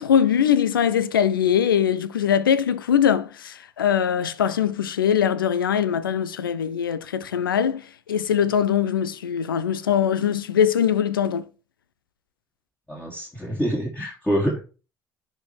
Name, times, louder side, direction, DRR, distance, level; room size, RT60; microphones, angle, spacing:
voice 1, 0.0-7.8 8.1-11.4, left 8 dB, 85° left, 0.5 m, -22 dB
voice 2, 12.9-14.6, equal, 10° left, 2.8 m, -26 dB
10.0 x 4.4 x 3.2 m
figure-of-eight pair, 60°, 11 cm